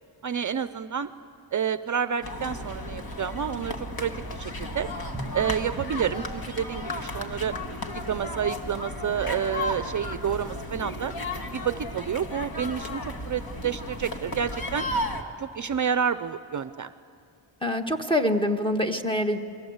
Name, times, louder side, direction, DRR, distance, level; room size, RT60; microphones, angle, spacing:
voice 1, 0.2-1.1 1.5-4.9 5.3-7.5 8.1-11.1 11.5-14.9 15.4-16.9, right 8 dB, 45° right, 12 dB, 0.5 m, -29 dB
sound 1, 2.2-15.2, left 1 dB, 50° left, 2.0 m, -34 dB
Drum, 5.1-7.3, right 2 dB, 5° right, 2.4 m, -43 dB
voice 2, 17.6-19.4, left 1 dB, 10° left, 5 dB, 1.4 m, -25 dB
29.5 x 22.5 x 8.0 m, 2.4 s
wide cardioid pair, 140°, 45 cm